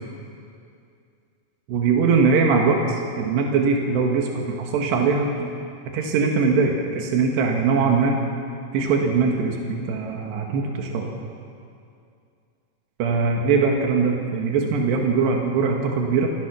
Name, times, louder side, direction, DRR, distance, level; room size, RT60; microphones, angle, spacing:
voice 1, 1.7-5.5 5.9-8.2 8.7-11.1 13.0-16.3, right 4 dB, 85° right, 1 dB, 3.9 m, -21 dB
29.0 x 19.0 x 6.2 m, 2.4 s
omnidirectional pair, 4.7 m